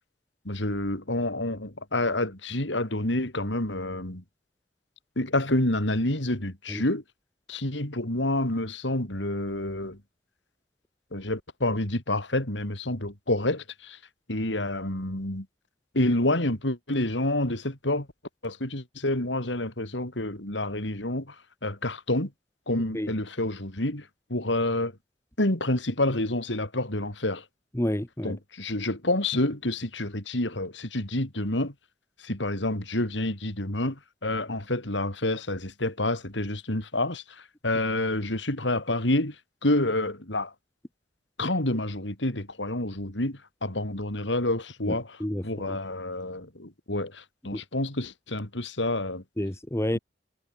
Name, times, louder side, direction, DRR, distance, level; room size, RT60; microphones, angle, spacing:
voice 1, 0.4-4.2 5.2-7.0 7.5-10.0 11.1-14.0 14.3-15.5 15.9-18.1 18.4-21.4 21.6-22.3 22.7-24.9 25.4-27.4 28.2-31.7 32.2-39.4 39.6-40.5 41.4-49.2 49.9-50.0, left 1 dB, 85° left, 4.5 m, -28 dB
voice 2, 27.8-28.3 44.9-45.8 47.5-47.6 49.4-50.0, left 1 dB, 15° left, 1.3 m, -30 dB
head